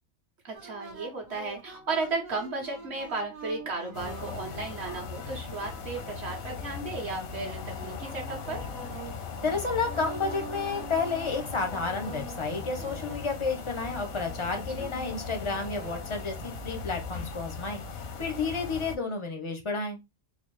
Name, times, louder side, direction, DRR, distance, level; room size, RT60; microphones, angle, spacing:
voice 1, 0.4-8.7 14.8-14.9, right 3 dB, 55° right, 1.2 m, -34 dB
sound 1, 0.5-16.9, right 4 dB, 85° right, 1.4 m, -45 dB
sound 2, 3.9-19.0, left 5 dB, 90° left, 1.1 m, -39 dB
voice 2, 9.4-17.8 18.2-20.0, left 4 dB, 40° left, 0.4 m, -31 dB
3.9 x 2.1 x 3.1 m
omnidirectional pair, 1.4 m